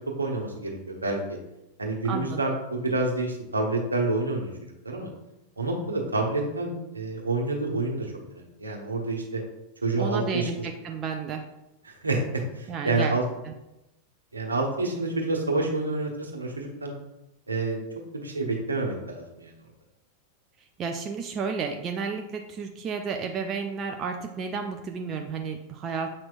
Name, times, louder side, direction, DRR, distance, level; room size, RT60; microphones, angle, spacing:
voice 1, 0.2-1.4 1.8-4.5 4.8-5.1 5.6-9.4 9.8-10.5 11.8-13.2 14.3-16.9 17.5-17.8 18.1-19.5, right 2 dB, 75° right, 0 dB, 1.2 m, -28 dB
voice 2, 2.0-2.4 10.0-11.4 12.7-13.1 13.5-13.6 20.8-26.2, right 5 dB, 30° right, 4 dB, 0.5 m, -32 dB
7.5 x 6.0 x 2.5 m, 0.92 s
figure-of-eight pair, 90°, 0 cm